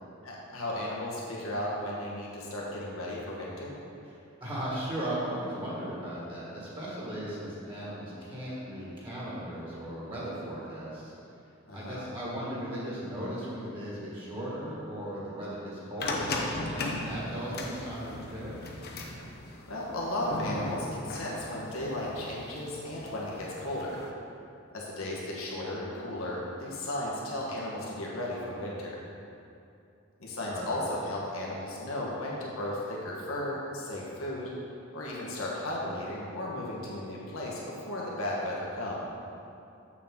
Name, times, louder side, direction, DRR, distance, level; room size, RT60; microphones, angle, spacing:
voice 1, 0.2-3.7 11.7-12.0 19.7-24.0 24.7-29.0 30.2-34.5 34.9-39.1, left 1 dB, 85° left, -4 dB, 1.4 m, -35 dB
voice 2, 4.4-11.1 11.7-18.6 30.4-30.9, right 1 dB, 25° right, -7 dB, 1.7 m, -37 dB
sound 1, 16.0-24.1, left 2 dB, 50° left, 0.7 m, -37 dB
7.3 x 6.6 x 3.8 m, 2.6 s
head